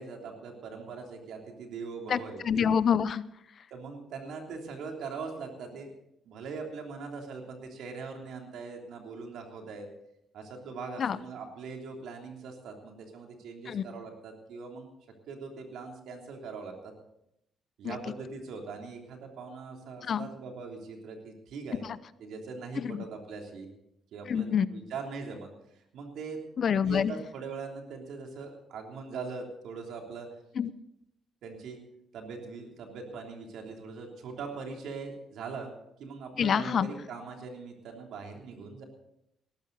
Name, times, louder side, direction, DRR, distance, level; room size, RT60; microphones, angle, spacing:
voice 1, 0.0-2.7 3.7-5.9 6.2-9.9 10.3-14.9 15.3-16.9 17.8-21.8 22.2-23.7 24.1-26.4 26.8-30.3 31.4-31.8 32.1-35.7 36.0-38.8, right 4 dB, 75° right, 2 dB, 3.2 m, -41 dB
voice 2, 2.1-3.2 11.0-11.2 13.7-13.8 17.8-18.0 20.0-20.3 21.8-22.0 22.8-23.0 24.3-24.7 26.6-27.1 30.6-30.7 36.4-36.9, left 7 dB, 55° left, 17 dB, 0.6 m, -27 dB
18.0 x 13.5 x 4.1 m, 0.78 s
cardioid pair, 90°, 0 cm